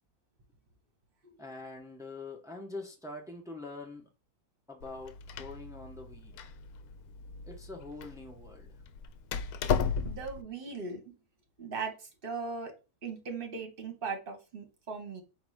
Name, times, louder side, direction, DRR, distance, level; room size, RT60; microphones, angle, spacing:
voice 1, 1.4-4.1 4.7-6.4 7.5-8.7, left 2 dB, 5° right, 0.3 m, -44 dB
Door, 4.8-10.4, left 6 dB, 75° left, 1.0 m, -35 dB
voice 2, 10.0-11.1 11.6-12.7 13.0-15.2, right 4 dB, 40° right, 1.2 m, -39 dB
4.6 x 2.7 x 4.0 m
omnidirectional pair, 1.6 m